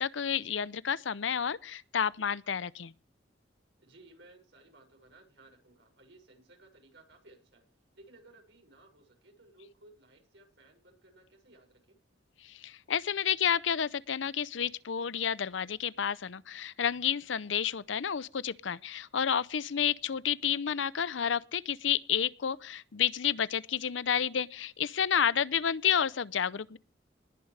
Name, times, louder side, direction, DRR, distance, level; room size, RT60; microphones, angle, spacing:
voice 1, 0.0-2.9 12.4-26.8, left 8 dB, 80° left, 0.6 m, -30 dB
voice 2, 3.8-7.6 7.9-12.0 20.1-20.2 25.3-25.4, right 2 dB, 70° right, 6.6 m, -58 dB
20.0 x 10.0 x 3.4 m
head